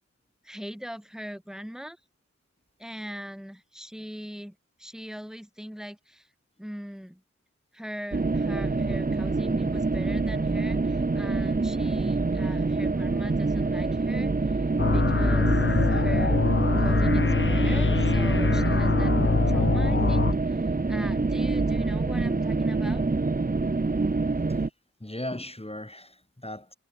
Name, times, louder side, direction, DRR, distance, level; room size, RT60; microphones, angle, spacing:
voice 1, 0.4-2.0 2.8-6.3 6.6-7.2 7.7-16.4 16.8-19.1 19.5-23.0, equal, ahead, 2.9 m, -40 dB
sound 1, 8.1-24.7, right 3 dB, 30° right, 0.8 m, -26 dB
sound 2, 14.8-20.3, left 4 dB, 40° left, 1.0 m, -24 dB
voice 2, 25.0-26.7, left 1 dB, 20° left, 4.2 m, -37 dB
wide cardioid pair, 45°, 29 cm